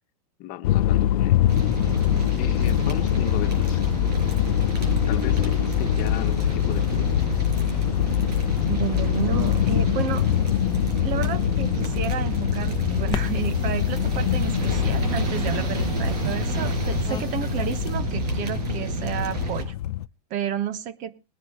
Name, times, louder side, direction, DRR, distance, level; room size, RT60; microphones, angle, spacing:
voice 1, 0.4-1.5 2.4-3.8 5.1-7.1, left 12 dB, 40° left, 1.2 m, -36 dB
sound 1, 0.6-20.1, left 12 dB, 70° left, 0.6 m, -24 dB
sound 2, 1.5-19.6, right 2 dB, 75° right, 5.9 m, -30 dB
voice 2, 8.7-10.3 10.9-19.7 20.3-21.1, right 10 dB, 40° right, 1.1 m, -31 dB
sound 3, 13.1-18.0, left 6 dB, 20° left, 0.8 m, -38 dB
20.0 x 10.5 x 3.0 m
hypercardioid pair, 125°, 21 cm